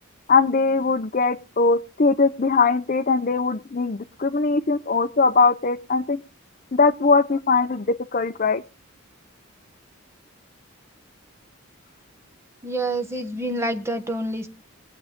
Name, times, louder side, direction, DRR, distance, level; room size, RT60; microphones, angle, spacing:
voice 1, 0.3-6.2 6.7-7.8 8.1-8.6, left 4 dB, 40° left, 0.5 m, -20 dB
voice 2, 12.6-14.5, right 1 dB, 10° right, 1.1 m, -27 dB
21.5 x 7.7 x 3.6 m
head